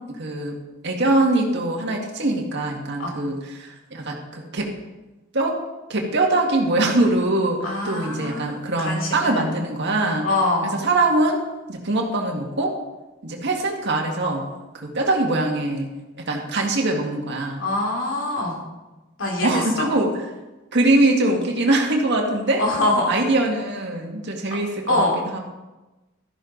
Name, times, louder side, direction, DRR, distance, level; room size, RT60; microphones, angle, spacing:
voice 1, 0.1-0.6 0.8-4.7 5.3-5.6 5.9-10.3 10.6-11.4 11.7-12.7 13.2-14.4 14.7-15.9 16.3-17.6 19.4-20.1 20.7-22.6 23.1-25.4, right 2 dB, 60° right, 1 dB, 2.0 m, -22 dB
voice 2, 7.6-9.6 10.2-10.8 17.6-18.6 19.2-19.9 22.6-23.2 24.9-25.1, left 2 dB, 70° left, -1 dB, 3.1 m, -24 dB
13.0 x 11.0 x 4.0 m, 1.1 s
head